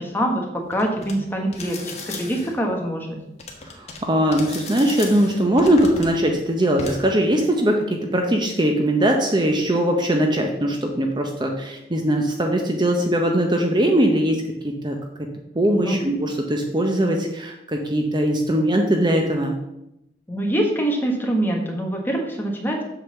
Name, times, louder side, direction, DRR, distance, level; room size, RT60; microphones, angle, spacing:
voice 1, 0.0-3.2 15.7-16.0 20.3-22.8, right 1 dB, 10° left, 0 dB, 1.3 m, -24 dB
sound 1, 0.7-1.1 1.5-2.6 3.4-4.0 4.3-6.1 6.8-7.0, left 3 dB, 40° left, 1.3 m, -36 dB
voice 2, 3.6-15.0 15.5-19.6, right 1 dB, 25° right, 3 dB, 0.7 m, -21 dB
7.8 x 3.9 x 6.8 m, 0.86 s
head